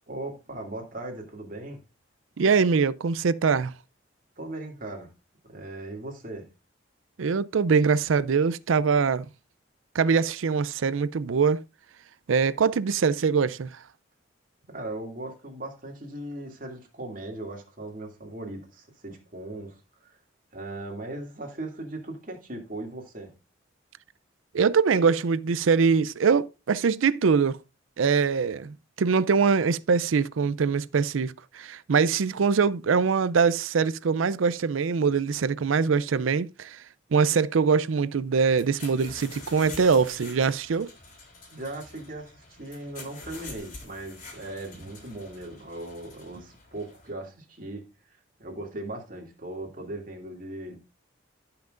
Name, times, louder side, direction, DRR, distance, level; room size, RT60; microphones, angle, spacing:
voice 1, 0.1-1.8 4.4-5.1 5.5-6.5 14.7-20.2 20.5-23.3 41.5-47.8 48.4-50.8, right 2 dB, 45° right, 2.5 m, -38 dB
voice 2, 2.4-3.7 7.2-9.3 9.9-11.6 12.3-13.7 24.5-27.6 28.0-36.8 37.1-40.9, right 5 dB, 90° right, 0.5 m, -23 dB
sound 1, 38.5-47.1, left 3 dB, 40° left, 3.6 m, -46 dB
15.5 x 5.9 x 2.5 m
head